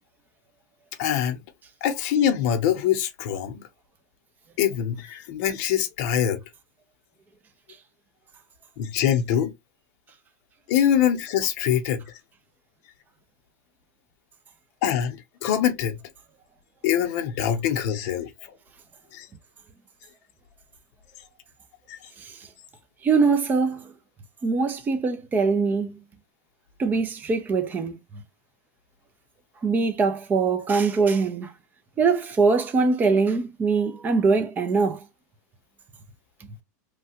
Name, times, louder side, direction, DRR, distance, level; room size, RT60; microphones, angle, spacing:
voice 1, 1.0-1.4 1.8-3.6 4.6-6.4 8.8-9.5 10.7-12.1 14.8-16.0 16.8-18.5 19.1-19.3 21.9-22.0, left 9 dB, 55° left, 0.8 m, -24 dB
voice 2, 23.0-23.9 24.4-26.0 26.8-28.0 29.6-31.5 32.0-35.0, right 4 dB, 20° right, 0.6 m, -22 dB
3.2 x 2.2 x 2.8 m
supercardioid pair, 135°, 9 cm